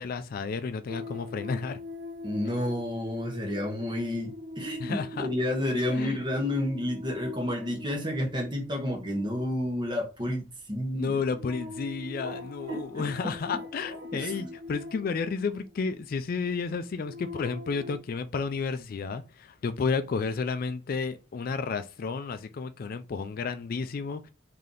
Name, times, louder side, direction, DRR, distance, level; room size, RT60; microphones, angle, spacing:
voice 1, 0.0-1.8 4.8-5.3 5.9-6.2 10.9-24.3, left 5 dB, 50° left, 0.3 m, -32 dB
sound 1, 0.9-16.0 16.7-18.0, left 2 dB, 85° right, 0.6 m, -43 dB
voice 2, 2.2-11.2 12.7-13.0 14.1-14.5, left 1 dB, 25° right, 1.2 m, -30 dB
3.3 x 2.8 x 3.8 m
head